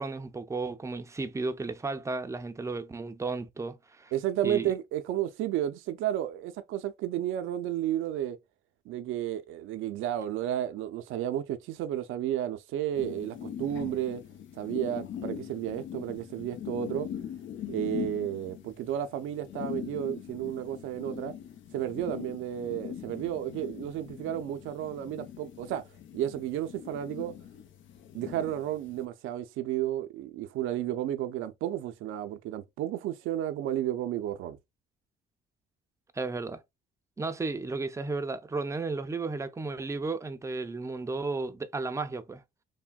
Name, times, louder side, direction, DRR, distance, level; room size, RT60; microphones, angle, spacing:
voice 1, 0.0-4.1 4.4-4.7 36.1-36.6 37.2-42.4, right 3 dB, 15° right, 0.4 m, -34 dB
voice 2, 4.1-8.4 8.9-14.2 14.5-17.1 17.7-21.3 21.7-25.8 26.1-27.3 28.1-34.6, right 11 dB, 90° right, 0.5 m, -32 dB
sound 1, 13.0-29.1, left 9 dB, 75° left, 0.6 m, -41 dB
3.4 x 2.1 x 2.2 m
cardioid pair, 90°, 20 cm